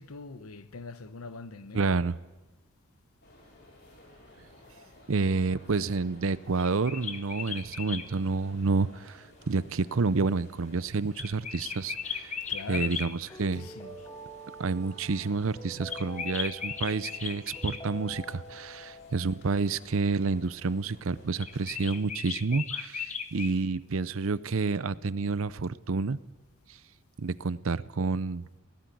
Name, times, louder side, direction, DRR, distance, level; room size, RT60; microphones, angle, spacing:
voice 1, 0.0-2.0 12.5-14.1, left 4 dB, 90° left, 1.0 m, -43 dB
voice 2, 1.7-2.2 5.1-9.2 9.5-12.3 12.7-13.6 14.6-26.2 27.2-28.4, right 4 dB, 75° right, 0.6 m, -29 dB
sound 1, 3.2-22.0, left 1 dB, 50° left, 6.3 m, -56 dB
sound 2, 6.6-8.1 11.1-13.1 15.9-17.8 21.4-23.6, left 6 dB, 30° left, 1.0 m, -36 dB
sound 3, 13.1-19.6, equal, 15° left, 2.5 m, -46 dB
17.5 x 16.0 x 9.3 m
head